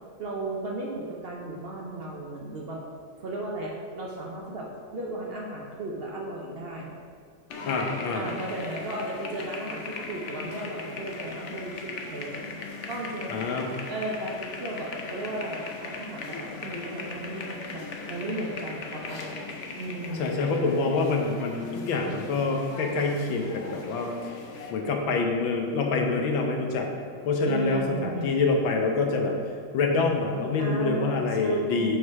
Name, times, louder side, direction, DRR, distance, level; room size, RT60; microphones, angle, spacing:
voice 1, 0.2-2.8 3.2-7.0 8.1-12.6 12.9-13.3 13.9-17.5 17.7-19.5 19.8-20.4 27.4-28.3 30.6-32.0, right 2 dB, 45° right, -1 dB, 0.7 m, -35 dB
sound 1, 7.5-24.7, left 4 dB, 60° left, 0.7 m, -39 dB
voice 2, 7.7-8.3 13.3-13.7 20.2-24.1 24.7-26.9 27.3-29.4 29.7-32.0, left 3 dB, 80° left, 2 dB, 1.7 m, -26 dB
6.5 x 5.4 x 4.7 m, 2.1 s
omnidirectional pair, 2.1 m